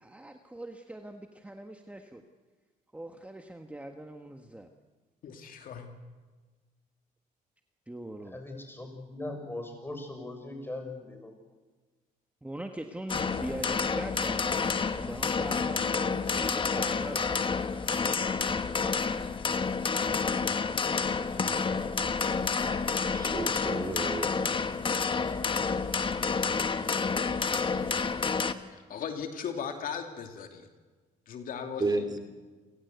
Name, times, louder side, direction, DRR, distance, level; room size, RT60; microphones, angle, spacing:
voice 1, 0.0-2.3 2.9-4.7 7.9-8.4 12.4-16.0 16.3-17.4, right 1 dB, 10° right, 5 dB, 1.5 m, -42 dB
voice 2, 5.2-5.9 28.7-30.7 31.3-32.2, left 7 dB, 65° left, 5 dB, 2.7 m, -38 dB
voice 3, 8.3-11.3, left 2 dB, 15° left, 5 dB, 6.5 m, -40 dB
sound 1, 13.1-28.5, left 5 dB, 35° left, 1.3 m, -29 dB
voice 4, 23.1-24.5 31.8-32.2, right 3 dB, 25° right, 7 dB, 2.9 m, -32 dB
29.0 x 16.5 x 8.2 m, 1.3 s
cardioid pair, 90°, 15 cm